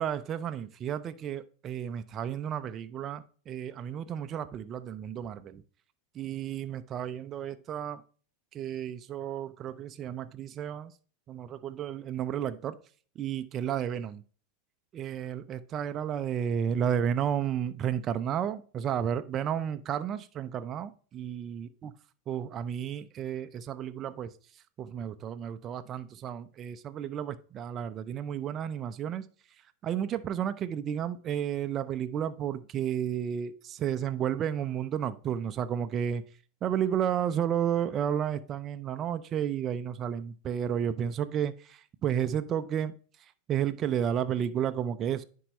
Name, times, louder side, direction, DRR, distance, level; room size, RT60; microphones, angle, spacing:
voice 1, 0.0-5.6 6.1-8.0 8.5-10.9 11.3-12.8 13.2-14.2 14.9-21.7 22.3-24.3 24.8-29.2 29.8-36.2 36.6-42.9 43.5-45.2, right 9 dB, 35° right, 10 dB, 0.5 m, -32 dB
10.0 x 4.6 x 3.1 m, 0.40 s
hypercardioid pair, 95°, 0 cm